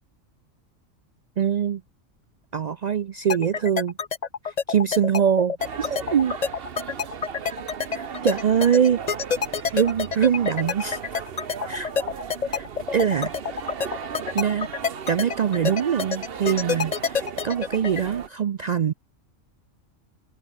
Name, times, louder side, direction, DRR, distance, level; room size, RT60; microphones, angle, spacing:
voice 1, 1.4-1.8 2.5-3.9 4.4-6.4 7.9-9.0 9.7-11.0 11.7-11.9 12.5-12.7 12.9-13.3 14.3-14.7 15.1-18.9, right 8 dB, 80° right, 0.3 m, -23 dB
sound 1, 3.3-18.0, left 6 dB, 35° left, 0.8 m, -27 dB
sound 2, 5.6-18.3, right 7 dB, 50° right, 1.1 m, -37 dB
open air
omnidirectional pair, 1.4 m